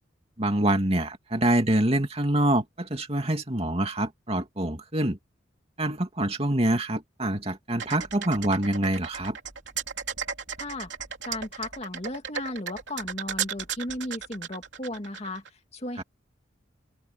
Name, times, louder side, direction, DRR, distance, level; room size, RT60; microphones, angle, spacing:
voice 1, 0.4-5.2 5.8-9.4 16.0-16.1, right 1 dB, 30° right, 2.7 m, -25 dB
sound 1, 7.8-15.5, right 7 dB, 65° right, 3.3 m, -35 dB
voice 2, 10.6-10.9 11.2-16.0, left 1 dB, 35° left, 2.4 m, -35 dB
open air
head